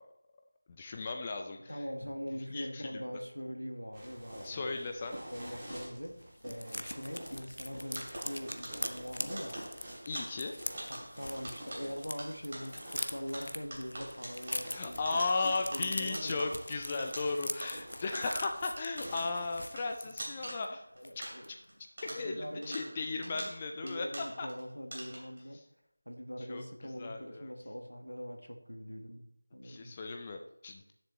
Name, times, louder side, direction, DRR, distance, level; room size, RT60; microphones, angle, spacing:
voice 1, 0.8-1.8 2.5-3.0 4.4-5.2 10.1-10.5 14.7-20.8 22.0-24.1 24.4-24.5 26.4-27.5 29.6-30.9, left 3 dB, 20° left, 3 dB, 0.4 m, -36 dB
voice 2, 1.7-4.8 5.1-9.6 10.9-16.5 19.0-19.1 21.0-21.5 22.1-22.9 23.3-23.5 23.8-25.6 26.0-29.2 29.5-29.9, equal, 85° left, 5 dB, 1.6 m, -42 dB
sound 1, 3.9-19.9, equal, 10° right, 2.4 m, -49 dB
sound 2, 5.4-5.6 5.8-5.9 6.2-12.1 12.4-20.6 21.0-21.2 21.4-21.7, left 1 dB, 65° left, 0.8 m, -42 dB
sound 3, 7.9-21.7 22.0-24.6 24.9-25.4, right 1 dB, 35° right, 2.7 m, -46 dB
14.5 x 7.2 x 3.1 m, 0.78 s
figure-of-eight pair, 170°, 0 cm